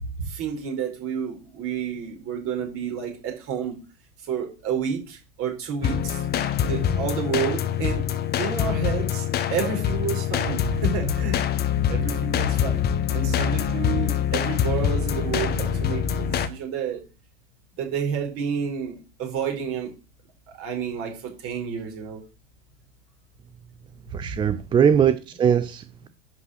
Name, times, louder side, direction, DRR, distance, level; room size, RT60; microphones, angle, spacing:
voice 1, 0.3-3.8 4.3-6.2 6.6-8.0 8.4-11.4 11.9-12.8 13.1-17.0 17.8-19.9 20.6-22.2, right 7 dB, 40° right, 4.5 m, -30 dB
sound 1, 5.8-16.5, left 9 dB, 25° left, 1.2 m, -25 dB
voice 2, 24.1-26.1, right 8 dB, 15° right, 0.4 m, -21 dB
11.0 x 5.5 x 6.5 m
figure-of-eight pair, 90°, 36 cm